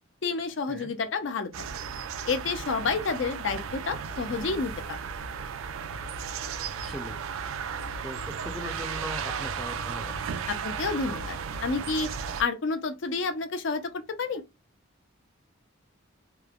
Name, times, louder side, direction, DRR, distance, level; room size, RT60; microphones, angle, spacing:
voice 1, 0.2-1.5 2.2-5.0 10.5-12.1 12.4-14.4, left 4 dB, 65° left, 0.4 m, -30 dB
sound 1, 1.5-12.4, right 6 dB, 85° right, 0.4 m, -35 dB
voice 2, 6.8-7.2 8.0-10.1, equal, ahead, 0.4 m, -39 dB
3.0 x 2.0 x 2.3 m
head